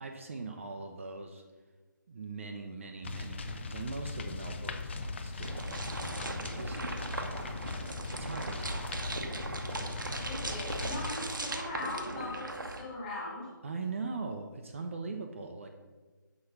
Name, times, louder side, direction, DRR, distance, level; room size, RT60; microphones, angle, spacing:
voice 1, 0.0-1.4 2.1-6.8 8.1-9.4 13.6-15.7, right 4 dB, 40° right, 4 dB, 0.6 m, -41 dB
sound 1, 3.0-11.1, left 3 dB, 35° left, 0.4 m, -39 dB
sound 2, 5.4-12.8, right 2 dB, 75° right, 1.0 m, -38 dB
voice 2, 10.2-13.5, left 2 dB, 15° left, -3 dB, 1.6 m, -40 dB
5.9 x 5.1 x 5.8 m, 1.3 s
figure-of-eight pair, 150°, 11 cm